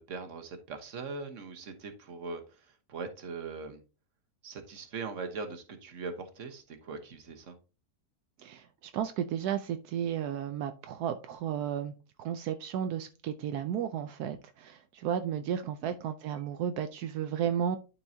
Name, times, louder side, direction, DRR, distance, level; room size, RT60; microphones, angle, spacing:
voice 1, 0.0-2.6 2.9-3.8 4.4-7.6 15.8-15.9, right 4 dB, 55° right, 6 dB, 1.5 m, -41 dB
voice 2, 8.4-11.9 12.2-17.8, right 9 dB, 80° right, 8 dB, 1.1 m, -33 dB
12.0 x 4.7 x 2.7 m, 0.33 s
omnidirectional pair, 1.6 m